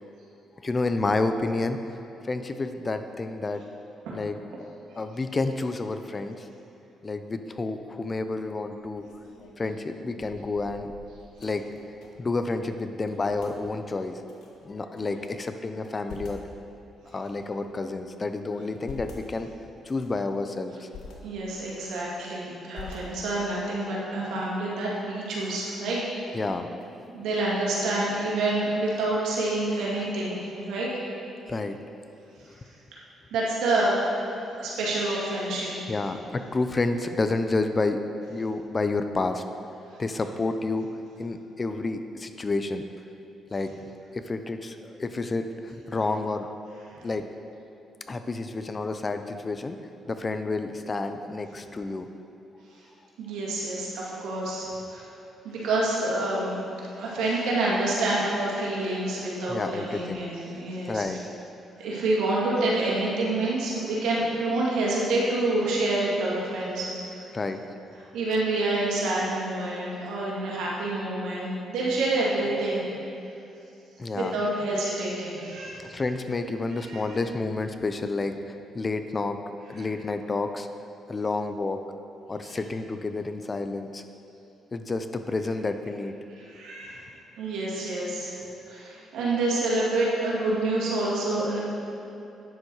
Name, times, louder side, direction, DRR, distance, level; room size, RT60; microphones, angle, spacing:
voice 1, 0.6-1.8 2.2-3.6 4.1-4.4 5.0-6.5 7.0-9.1 9.6-10.9 11.4-11.7 12.2-14.2 14.6-16.4 17.1-19.5 19.8-20.9 26.3-26.7 30.0-30.1 31.5-31.8 35.9-38.0 38.3-39.4 40.0-40.9 41.2-42.8 43.5-43.7 44.1-46.5 47.0-47.3 48.1-49.8 50.1-52.1 59.5-60.3 60.9-61.2 67.3-67.6 74.0-74.4 75.8-79.4 79.7-80.7 81.1-81.8 82.3-84.0 84.7-86.1, left 3 dB, 30° left, 8 dB, 0.5 m, -29 dB
sound 1, 8.8-12.3 12.6-12.7 13.0-13.6 14.2-15.3 15.7-16.5 17.1-18.0 18.5-19.2 19.8-20.2 20.7-21.1 21.6-22.3 22.7-23.5, left 5 dB, 85° left, 1.3 m, -47 dB
voice 2, 21.2-26.0 27.1-30.9 33.3-34.1 34.6-35.7 53.2-55.1 55.4-56.6 57.0-61.0 61.8-67.2 68.1-72.8 74.1-75.9 76.8-77.0 82.5-82.6 86.4-87.0 87.4-88.4 88.7-91.6, right 2 dB, 85° right, -5 dB, 2.3 m, -27 dB
9.5 x 6.9 x 4.8 m, 2.9 s
cardioid pair, 90°, 0 cm